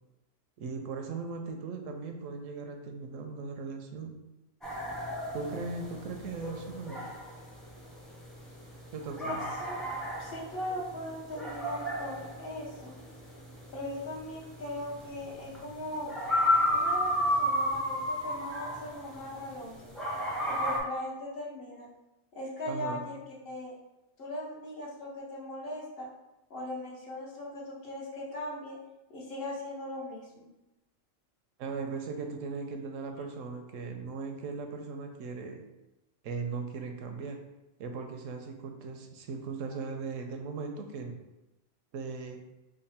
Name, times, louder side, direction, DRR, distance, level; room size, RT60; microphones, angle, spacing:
voice 1, 0.6-4.2 5.3-7.0 8.9-9.5 22.7-23.1 31.6-35.6 36.2-37.4 37.8-41.2 41.9-42.4, right 4 dB, 80° right, 4 dB, 0.9 m, -38 dB
sound 1, 4.6-19.6 19.9-20.8, left 1 dB, ahead, 0.5 m, -32 dB
voice 2, 9.2-9.8 10.1-12.9 13.7-16.1 16.7-19.9 20.5-21.9 22.3-23.2 23.4-23.7 24.2-26.1 26.5-28.8 29.1-30.5, left 1 dB, 50° left, -3 dB, 1.1 m, -39 dB
3.7 x 2.0 x 4.1 m, 0.98 s
omnidirectional pair, 1.3 m